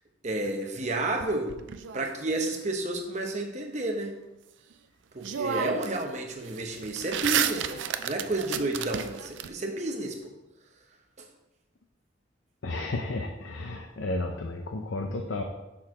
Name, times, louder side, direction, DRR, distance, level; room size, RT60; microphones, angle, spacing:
voice 1, 0.2-1.5 1.9-4.2 5.1-10.3 11.2-11.3, right 2 dB, 35° right, 3 dB, 0.9 m, -31 dB
sound 1, 1.2-2.5 4.7-4.8 5.2-6.0 6.3-9.5, right 8 dB, 70° right, 0.4 m, -31 dB
voice 2, 12.6-15.4, left 2 dB, 80° left, 3 dB, 0.6 m, -32 dB
6.1 x 4.6 x 4.8 m, 0.97 s
head